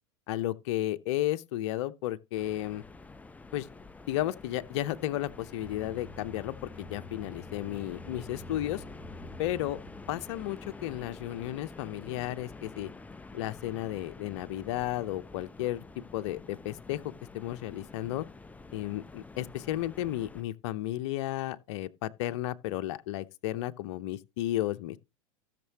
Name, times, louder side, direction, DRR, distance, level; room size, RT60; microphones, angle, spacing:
voice 1, 0.3-2.8 3.5-3.7 4.1-8.8 9.4-9.8 10.1-12.9 13.3-15.8 16.1-17.0 17.3-18.3 18.7-25.0, left 14 dB, 55° left, 0.8 m, -33 dB
sound 1, 2.3-20.4, left 3 dB, 10° left, 0.7 m, -48 dB
sound 2, 5.6-11.4, left 2 dB, 10° right, 1.9 m, -48 dB
16.5 x 6.7 x 2.9 m
figure-of-eight pair, 90°, 17 cm